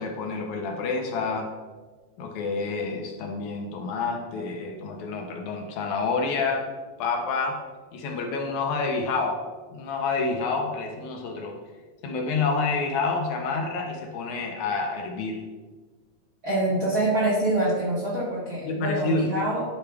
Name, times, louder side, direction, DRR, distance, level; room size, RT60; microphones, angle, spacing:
voice 1, 0.0-1.5 2.2-6.7 7.0-7.6 7.9-9.4 9.7-11.6 12.0-15.4 18.6-19.3, left 4 dB, 75° left, 2 dB, 2.2 m, -28 dB
voice 2, 16.4-19.6, right 1 dB, 45° right, -6 dB, 1.4 m, -25 dB
10.5 x 4.6 x 3.4 m, 1.3 s
omnidirectional pair, 3.5 m